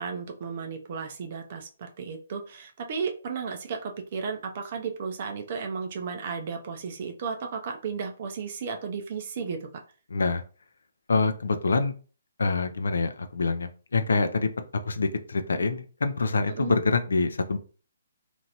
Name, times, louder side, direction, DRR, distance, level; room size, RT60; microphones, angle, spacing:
voice 1, 0.0-9.8 16.5-16.7, right 5 dB, 45° right, 4 dB, 0.4 m, -34 dB
voice 2, 10.1-10.4 11.1-11.9 12.4-14.5 14.9-17.6, left 3 dB, 65° left, 9 dB, 0.4 m, -25 dB
3.0 x 2.5 x 2.8 m, 0.38 s
figure-of-eight pair, 135°, 0 cm